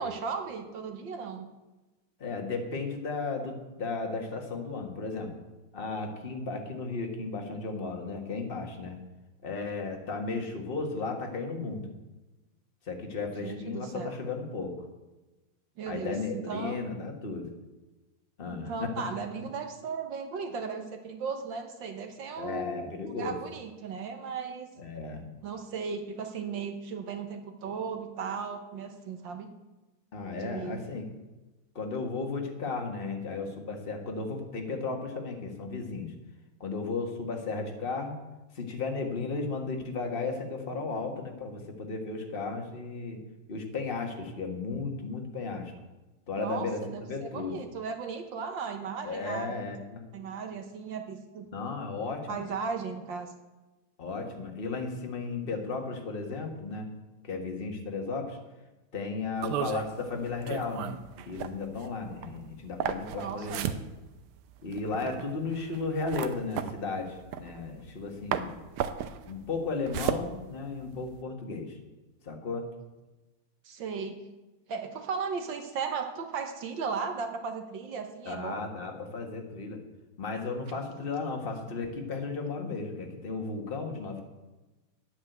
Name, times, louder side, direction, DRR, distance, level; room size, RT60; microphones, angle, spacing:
voice 1, 0.0-1.5 13.4-14.2 15.8-16.8 18.5-22.8 23.2-24.7 25.4-29.5 30.4-30.8 46.4-49.5 50.1-51.5 52.3-53.3 62.2-62.3 63.2-63.7 73.7-74.2 74.7-78.6, right 5 dB, 65° right, 6 dB, 1.7 m, -36 dB
voice 2, 2.2-5.3 5.7-9.0 9.4-11.9 12.8-14.8 15.9-17.5 18.4-19.1 22.4-23.4 24.8-25.2 30.1-31.0 31.7-36.1 36.6-38.1 38.5-43.2 43.5-45.7 46.3-47.5 49.0-50.0 51.5-52.4 54.0-56.9 57.2-58.4 58.9-60.9 61.3-63.5 64.6-68.5 69.2-71.8 72.2-72.7 78.2-79.8 80.2-84.2, left 4 dB, 30° left, 2 dB, 1.6 m, -34 dB
sound 1, 59.4-68.0 68.3-71.2, right 9 dB, 85° right, 1.6 m, -35 dB
9.8 x 9.0 x 8.0 m, 1.1 s
omnidirectional pair, 2.3 m